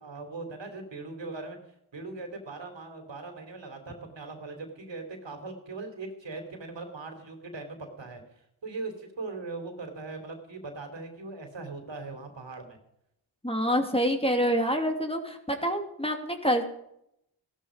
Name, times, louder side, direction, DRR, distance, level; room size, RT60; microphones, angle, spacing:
voice 1, 0.0-1.6 1.9-8.2 8.6-12.8, right 3 dB, 65° right, 5 dB, 3.4 m, -40 dB
voice 2, 13.4-16.7, equal, 10° left, 4 dB, 2.8 m, -27 dB
15.5 x 12.5 x 5.1 m, 0.76 s
cardioid pair, 40°, 48 cm